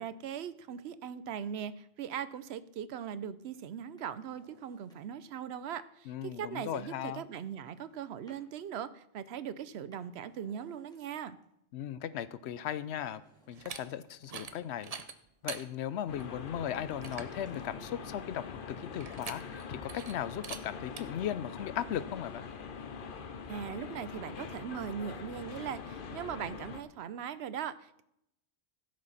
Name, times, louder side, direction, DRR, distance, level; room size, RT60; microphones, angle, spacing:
voice 1, 0.0-11.4 23.5-28.0, right 8 dB, 75° right, 15 dB, 0.9 m, -40 dB
Drawer open or close, 4.0-5.3 7.0-8.5 9.7-11.4 12.7-14.4 16.8-18.0 19.5-20.6 20.8-20.9, right 1 dB, 5° left, 2.0 m, -64 dB
voice 2, 6.1-7.2 11.7-13.2 13.5-14.9 15.4-22.5, left 10 dB, 80° left, 16 dB, 0.9 m, -37 dB
sound 1, 13.5-13.8 14.2-14.5 14.8-15.6 16.2-16.3 16.7-16.8 17.0-17.3 19.0-19.6 19.9-20.1 20.4-20.6 21.0-21.1, right 6 dB, 40° right, 0.6 m, -42 dB
sound 2, 16.1-26.8, left 5 dB, 55° left, 0.9 m, -44 dB
16.0 x 6.5 x 4.1 m, 0.78 s
omnidirectional pair, 1.1 m